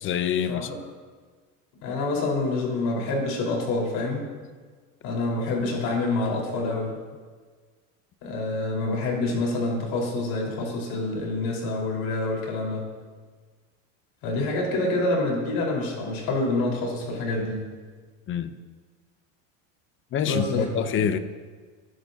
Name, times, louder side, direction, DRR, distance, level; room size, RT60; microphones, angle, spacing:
voice 1, 0.0-0.7 18.3-18.6 20.1-21.2, left 8 dB, 30° left, 0.7 m, -26 dB
voice 2, 1.8-4.3 5.0-6.9 8.2-12.8 14.2-17.7 20.2-20.8, left 2 dB, 60° left, 4.6 m, -27 dB
20.5 x 11.0 x 2.8 m
supercardioid pair, 135°, 39 cm